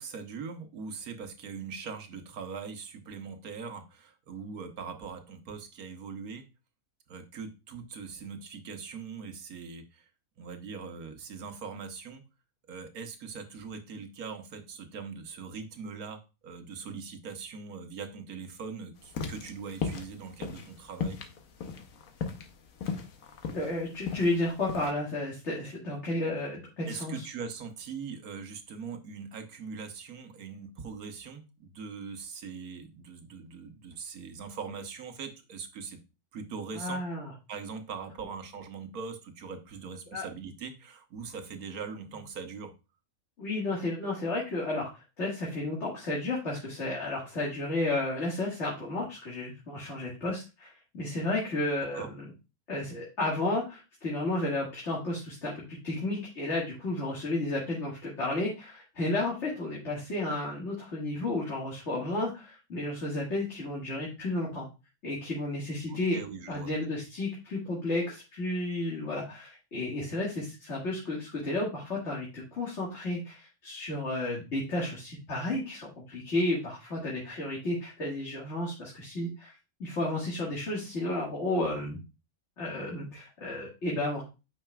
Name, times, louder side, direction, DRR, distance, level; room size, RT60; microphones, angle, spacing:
voice 1, 0.0-6.4 7.1-10.1 10.4-12.2 12.7-21.2 26.9-36.0 36.3-37.0 37.5-42.7 51.9-52.1 65.9-66.7, right 5 dB, 80° right, 7 dB, 1.5 m, -41 dB
sound 1, 19.0-24.9, left 5 dB, 70° left, 1.3 m, -36 dB
voice 2, 23.5-27.2 36.7-37.3 40.1-40.3 43.4-44.9 45.2-52.2 52.7-64.7 65.0-66.2 66.5-79.5 79.8-82.0 82.6-84.2, left 2 dB, 50° left, -4 dB, 2.1 m, -32 dB
8.8 x 5.7 x 2.3 m, 0.29 s
omnidirectional pair, 1.5 m